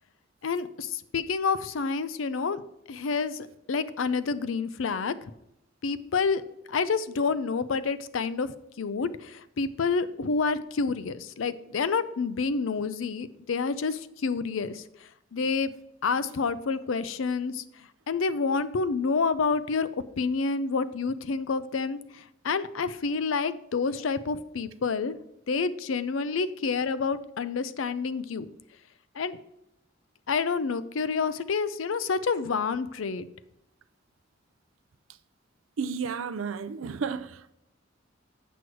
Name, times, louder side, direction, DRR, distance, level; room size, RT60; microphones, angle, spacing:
voice 1, 0.4-2.6 2.9-5.2 5.8-6.4 6.7-8.5 8.8-14.8 15.3-15.7 16.0-17.6 18.1-19.9 20.2-25.1 25.5-28.5 29.2-29.4 30.3-33.3, left 4 dB, 80° left, 0.5 m, -28 dB
voice 2, 35.8-37.5, right 5 dB, 85° right, 0.4 m, -32 dB
8.1 x 6.1 x 4.6 m
head